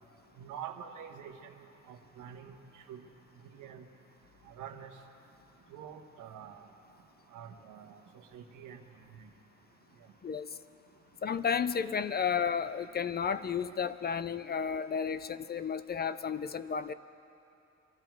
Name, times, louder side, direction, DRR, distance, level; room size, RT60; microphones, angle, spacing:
voice 1, 0.4-3.0 3.5-3.8 4.4-4.9 5.7-6.7 7.3-8.0 8.3-8.8 9.2-9.3, right 8 dB, 80° right, 5 dB, 1.2 m, -46 dB
voice 2, 10.2-10.6 11.2-16.9, left 7 dB, 35° left, 14 dB, 0.4 m, -32 dB
23.0 x 12.5 x 4.6 m, 2.8 s
cardioid pair, 90°, 30 cm